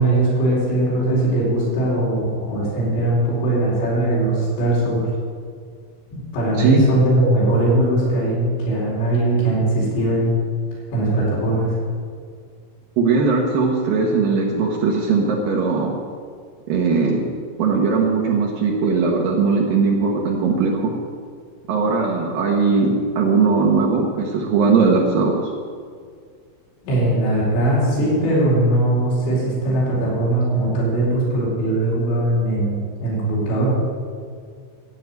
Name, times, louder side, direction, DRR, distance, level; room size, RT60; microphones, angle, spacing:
voice 1, 0.0-5.0 6.1-10.3 10.9-11.7 26.8-33.7, right 1 dB, 65° left, -6 dB, 6.5 m, -20 dB
voice 2, 13.0-16.0 16.7-17.3 17.6-20.9 21.7-25.4, right 4 dB, 70° right, -1 dB, 2.2 m, -19 dB
13.0 x 6.3 x 9.5 m, 2.1 s
omnidirectional pair, 5.5 m